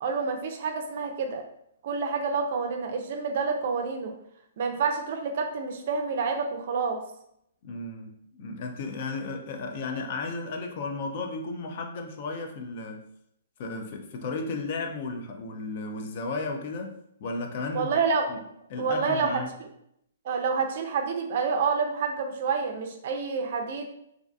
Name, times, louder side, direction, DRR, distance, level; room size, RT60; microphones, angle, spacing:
voice 1, 0.0-1.4 1.8-4.1 4.6-7.0 17.7-18.3 18.8-19.4 20.3-23.8, right 5 dB, 50° right, 4 dB, 0.4 m, -28 dB
voice 2, 7.6-13.1 13.6-17.9 18.3-18.4 18.7-19.5, left 3 dB, 45° left, 4 dB, 0.3 m, -34 dB
2.5 x 2.4 x 2.3 m, 0.75 s
hypercardioid pair, 155°, 0 cm